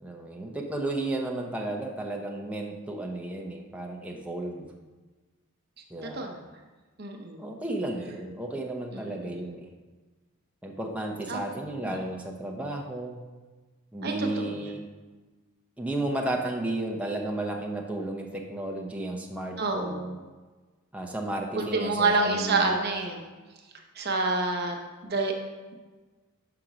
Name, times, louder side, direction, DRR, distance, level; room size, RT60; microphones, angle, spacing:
voice 1, 0.0-4.7 5.9-6.3 7.4-9.7 10.6-13.2 13.9-14.8 15.8-20.2 20.9-22.8, right 1 dB, 5° right, 1 dB, 0.6 m, -33 dB
voice 2, 6.0-6.4 7.0-7.5 8.9-9.3 11.3-11.4 11.8-12.0 14.0-14.7 19.6-20.0 21.5-23.2 23.9-24.8 25.0-25.3, right 3 dB, 45° right, 2 dB, 0.8 m, -28 dB
5.9 x 5.2 x 4.9 m, 1.3 s
head